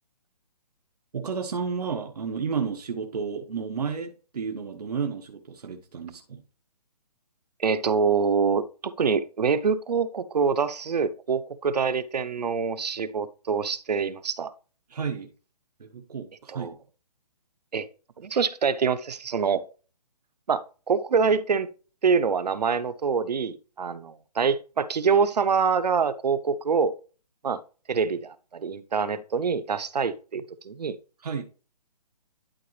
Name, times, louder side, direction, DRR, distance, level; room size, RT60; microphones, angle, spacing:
voice 1, 1.1-6.4 14.9-15.3 15.8-16.8 31.2-31.4, right 6 dB, 75° right, 1.3 m, -32 dB
voice 2, 7.6-14.5 16.5-16.7 17.7-17.9 18.2-19.6 20.5-21.7 22.0-26.9 27.4-27.6 27.9-31.0, right 5 dB, 90° right, 0.8 m, -25 dB
11.5 x 3.9 x 3.2 m
hypercardioid pair, 170°, 20 cm